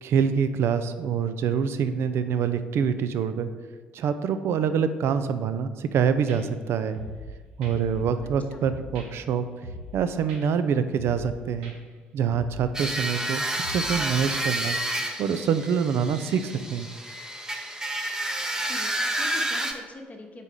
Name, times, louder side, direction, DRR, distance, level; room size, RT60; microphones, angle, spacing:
voice 1, 0.0-3.5 3.9-7.0 7.6-9.5 9.9-11.7 12.1-14.8 15.2-16.9, right 7 dB, 55° right, 11 dB, 0.4 m, -25 dB
sound 1, 6.3-6.4 6.9-7.3 7.6-8.3 8.6-9.1 9.6-10.0 10.3-10.4 11.0-11.3 11.6-11.7 12.3-12.7 13.0-13.1 13.6-14.0 14.3-14.4, equal, 75° right, 0.8 m, -39 dB
voice 2, 8.2-8.6 18.6-20.4, left 2 dB, 30° left, 2 dB, 1.0 m, -43 dB
sound 2, 12.7-19.7, right 1 dB, 10° right, 0.8 m, -30 dB
4.7 x 4.2 x 5.2 m, 1.5 s
figure-of-eight pair, 50°, 5 cm